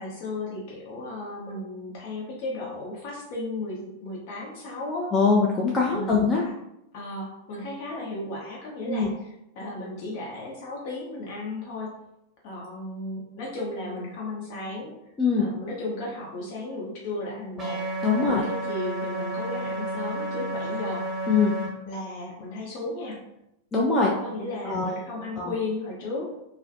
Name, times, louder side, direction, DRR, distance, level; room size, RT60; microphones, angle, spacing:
voice 1, 0.0-5.1 5.9-6.5 6.9-11.9 12.4-14.9 15.4-17.8 18.3-21.1 21.9-23.2 24.2-26.3, left 2 dB, 50° left, -3 dB, 0.8 m, -35 dB
voice 2, 5.1-6.4 8.9-9.1 15.2-15.5 18.0-18.5 21.3-21.5 23.7-24.1 24.7-25.0 25.4-25.5, left 4 dB, 20° left, -3 dB, 0.4 m, -22 dB
sound 1, 17.6-21.7, right 1 dB, 15° right, 0.9 m, -31 dB
2.4 x 2.1 x 2.5 m, 0.82 s
figure-of-eight pair, 90°, 0 cm